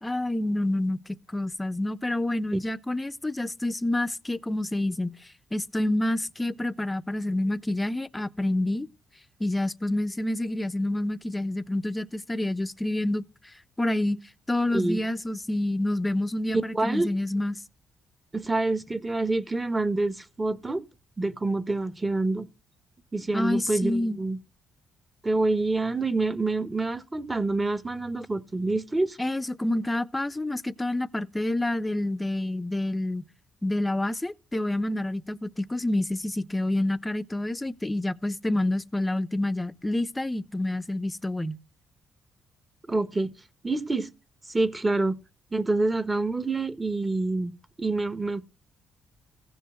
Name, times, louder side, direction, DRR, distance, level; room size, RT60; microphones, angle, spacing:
voice 1, 0.0-1.0 1.3-5.1 5.5-8.9 9.4-13.2 13.8-14.2 14.5-17.6 23.3-24.2 29.2-33.2 33.6-41.6, left 1 dB, 15° left, 0.8 m, -28 dB
voice 2, 16.7-17.1 18.3-20.8 21.2-22.5 23.1-24.4 25.2-29.2 42.9-43.3 43.6-44.1 44.5-45.2 45.5-47.5 47.8-48.4, right 2 dB, 20° right, 1.3 m, -27 dB
16.0 x 5.4 x 7.8 m
cardioid pair, 90°, 0 cm